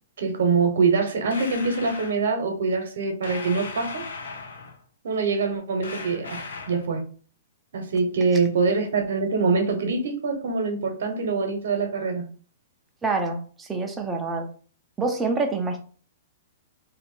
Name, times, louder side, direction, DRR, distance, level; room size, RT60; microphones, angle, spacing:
voice 1, 0.2-4.0 5.0-7.0 7.7-12.3, right 4 dB, 75° right, 5 dB, 1.0 m, -24 dB
sound 1, 1.3-2.2 3.2-4.8 5.8-6.9, left 4 dB, 80° left, 0.8 m, -37 dB
voice 2, 13.0-14.5 15.0-15.8, right 3 dB, 15° right, 3 dB, 0.7 m, -26 dB
2.8 x 2.5 x 4.2 m, 0.42 s
hypercardioid pair, 140°, 0 cm